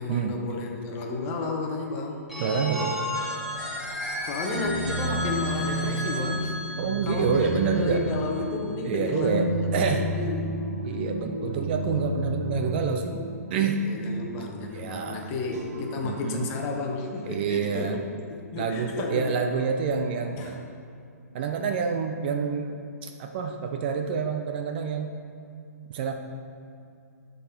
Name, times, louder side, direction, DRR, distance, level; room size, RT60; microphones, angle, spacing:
voice 1, 0.0-2.3 4.2-6.7 7.0-10.6 13.8-17.9 18.3-19.4 20.4-20.6, left 3 dB, 25° left, 1 dB, 1.0 m, -32 dB
Telephone, 2.3-8.1, left 1 dB, ahead, 1.5 m, -33 dB
voice 2, 2.4-2.9 6.8-8.0 8.8-10.1 10.8-13.8 14.7-15.3 16.0-16.5 17.3-18.0 18.6-20.6 21.3-25.1 25.9-26.1, right 5 dB, 40° right, 5 dB, 0.6 m, -27 dB
sound 1, 4.5-17.1, equal, 60° right, 1.7 m, -33 dB
11.0 x 4.1 x 4.4 m, 2.5 s
figure-of-eight pair, 125°, 9 cm